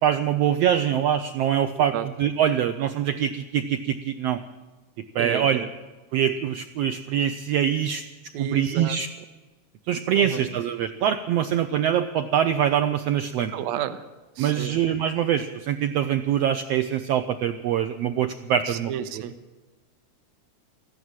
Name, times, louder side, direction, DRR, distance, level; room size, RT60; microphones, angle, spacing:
voice 1, 0.0-4.4 5.1-5.7 6.1-8.0 8.4-9.1 9.9-13.5 14.4-18.9, right 9 dB, 85° right, 9 dB, 1.4 m, -24 dB
voice 2, 5.2-5.7 8.3-9.0 10.1-10.4 13.5-14.0 14.4-14.7 18.7-19.3, right 9 dB, 70° right, 10 dB, 1.9 m, -31 dB
14.0 x 11.0 x 8.9 m, 1.2 s
omnidirectional pair, 3.5 m